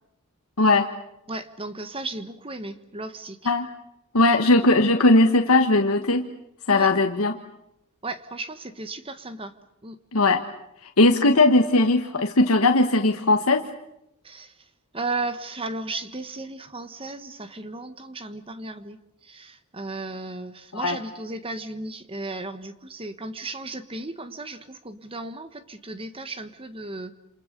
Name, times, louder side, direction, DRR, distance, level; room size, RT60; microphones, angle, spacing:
voice 1, 1.3-3.5 4.4-4.5 6.7-6.9 8.0-9.5 9.8-10.0 14.2-14.7 14.9-27.1, right 2 dB, 25° right, 11 dB, 1.4 m, -35 dB
voice 2, 4.1-6.3 6.7-7.3 10.1-10.4 10.8-13.6 20.7-21.0, left 2 dB, 75° left, 5 dB, 1.5 m, -19 dB
28.5 x 28.0 x 6.8 m, 0.82 s
head